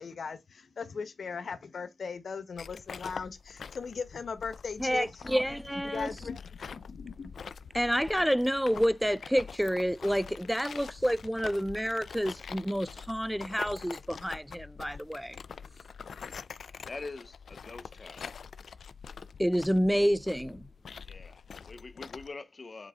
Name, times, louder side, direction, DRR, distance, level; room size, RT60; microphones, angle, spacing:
voice 1, 0.0-5.2 5.8-7.3, left 5 dB, 70° left, 1.2 m, -38 dB
sound 1, 2.6-22.3, left 6 dB, 90° left, 0.5 m, -45 dB
voice 2, 4.8-6.1 7.7-15.4 19.4-20.7, equal, ahead, 0.3 m, -29 dB
voice 3, 16.4-18.3 21.0-22.9, left 3 dB, 40° left, 0.7 m, -45 dB
7.7 x 3.9 x 3.6 m
wide cardioid pair, 140°, 0 cm